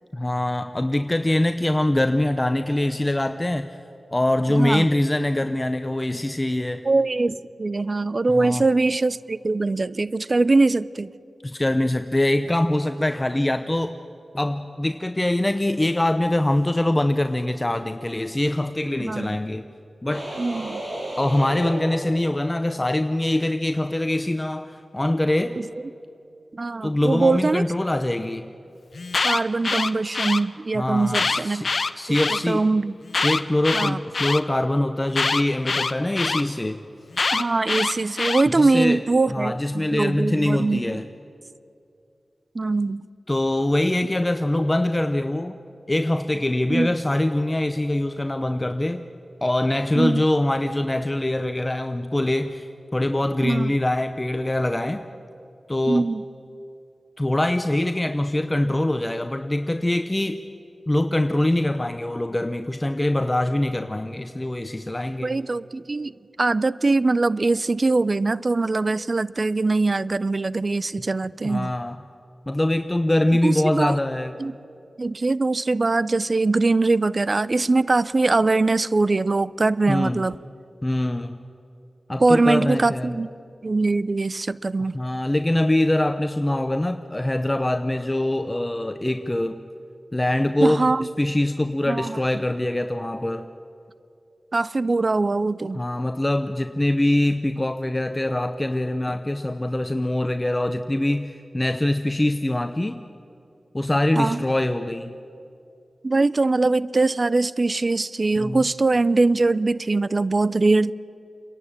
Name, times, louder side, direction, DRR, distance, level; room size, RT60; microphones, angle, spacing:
voice 1, 0.1-3.8 4.1-6.8 8.3-8.6 11.4-13.9 14.3-19.7 20.0-20.4 21.2-25.6 26.8-28.5 30.7-31.7 32.0-32.7 33.2-36.8 38.5-39.0 39.3-41.1 43.3-45.6 45.9-49.0 49.4-55.0 55.7-56.1 57.2-60.4 60.9-65.4 71.4-72.0 72.5-74.3 79.9-80.2 80.8-81.4 82.1-83.2 84.9-89.6 90.1-93.5 95.7-103.0 103.7-105.1 108.4-108.6, left 1 dB, 25° left, 8 dB, 0.8 m, -23 dB
voice 2, 4.5-4.9 6.8-11.1 19.0-19.4 20.4-20.8 25.6-25.7 26.5-27.6 29.2-31.6 32.3-33.0 33.7-34.0 37.3-41.0 42.5-43.0 46.7-46.9 50.0-50.2 53.4-53.7 55.9-56.2 65.2-66.1 66.4-71.7 73.4-73.9 74.4-74.5 75.0-80.4 82.2-83.3 83.6-85.0 90.6-91.1 91.9-92.2 94.5-95.8 104.2-104.4 106.0-110.9, right 3 dB, 50° right, 18 dB, 0.5 m, -22 dB
sound 1, 20.1-22.7, right 1 dB, 75° right, 7.2 m, -33 dB
Alarm, 28.9-30.4 31.1-32.4 33.1-34.4 35.1-36.4 37.1-38.4, left 4 dB, 65° left, 0.7 m, -24 dB
27.0 x 11.5 x 8.9 m, 2.5 s
cardioid pair, 50°, 0 cm